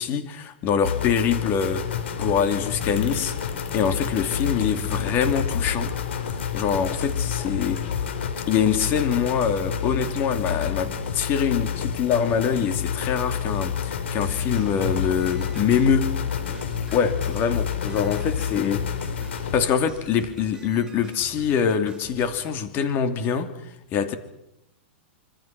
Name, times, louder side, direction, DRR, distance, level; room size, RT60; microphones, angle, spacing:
voice 1, 0.0-5.9 6.5-7.9 8.5-16.1 16.9-18.9 19.5-23.6 23.9-24.2, left 7 dB, 35° left, 2.9 m, -24 dB
sound 1, 0.8-19.6, left 7 dB, 80° left, 4.3 m, -29 dB
sound 2, 2.2-8.3, left 7 dB, 60° left, 4.3 m, -36 dB
sound 3, 14.2-22.6, right 3 dB, 10° right, 4.7 m, -46 dB
26.5 x 25.0 x 6.0 m
hypercardioid pair, 135°, 6 cm